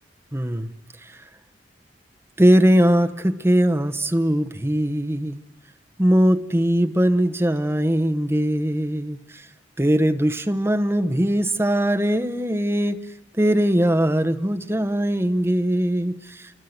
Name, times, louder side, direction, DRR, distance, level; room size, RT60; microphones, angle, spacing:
voice 1, 0.3-0.7 1.0-1.2 2.4-5.4 6.0-9.5 9.8-13.0 13.4-16.5, equal, 15° right, 7 dB, 0.9 m, -20 dB
27.5 x 22.5 x 8.0 m, 1.1 s
head